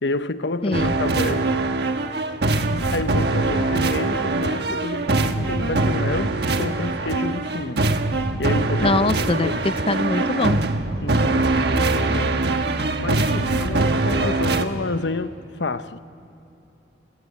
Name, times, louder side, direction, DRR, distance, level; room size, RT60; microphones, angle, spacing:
voice 1, 0.0-1.6 2.5-7.9 8.4-9.7 11.0-12.4 13.0-16.0, left 2 dB, 75° left, 1.0 m, -29 dB
voice 2, 0.6-0.9 8.8-10.6 12.1-12.2, left 2 dB, 30° left, 0.5 m, -23 dB
sound 1, 0.7-14.7, right 2 dB, 65° right, 1.4 m, -22 dB
28.0 x 23.0 x 8.7 m
head